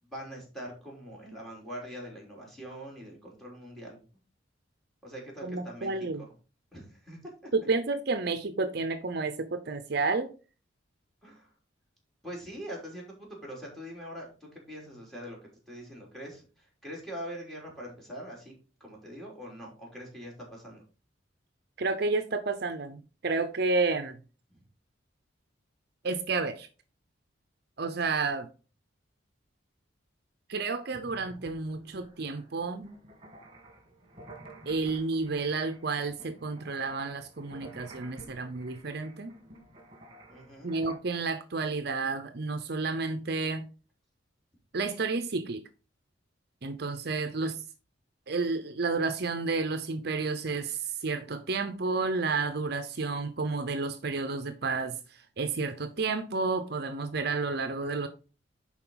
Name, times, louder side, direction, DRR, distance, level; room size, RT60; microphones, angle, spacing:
voice 1, 0.0-4.0 5.0-5.9 6.2-6.3 6.7-7.2 11.2-11.5 12.2-18.5 18.8-20.8 24.5-24.6 40.3-40.7 47.2-47.3, equal, ahead, 3.2 m, -43 dB
voice 2, 5.4-6.3 7.5-10.3 21.8-24.2 26.0-26.7 27.8-28.5 30.5-32.9 34.7-39.4 40.6-43.7 44.7-45.6 46.6-47.6 48.3-58.1, right 3 dB, 55° right, 0.7 m, -31 dB
sound 1, 30.9-40.9, right 1 dB, 25° right, 2.3 m, -51 dB
10.5 x 4.4 x 3.9 m
head